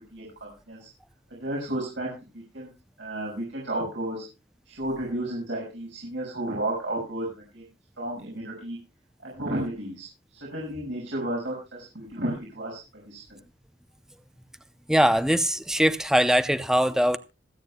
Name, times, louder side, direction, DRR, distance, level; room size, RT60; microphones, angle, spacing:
voice 1, 1.4-2.1 2.5-2.7 3.0-4.2 4.7-7.3 7.5-7.6 8.0-8.8 9.2-10.0 10.4-12.8 13.0-13.2, right 1 dB, 80° right, 6.4 m, -32 dB
voice 2, 14.9-17.2, equal, 5° right, 0.6 m, -21 dB
26.5 x 9.0 x 2.2 m
head